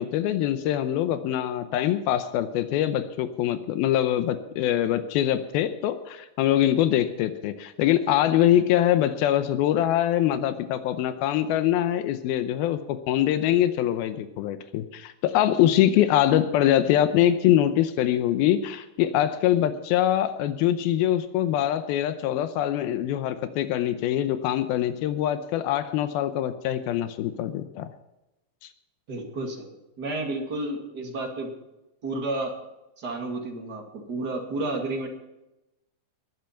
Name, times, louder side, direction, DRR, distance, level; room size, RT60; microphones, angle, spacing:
voice 1, 0.0-27.9, left 11 dB, 90° left, 10 dB, 2.6 m, -23 dB
voice 2, 29.1-31.5 32.0-32.6 33.0-35.1, right 2 dB, 30° right, 1 dB, 2.3 m, -31 dB
21.0 x 7.8 x 5.8 m, 0.95 s
omnidirectional pair, 4.3 m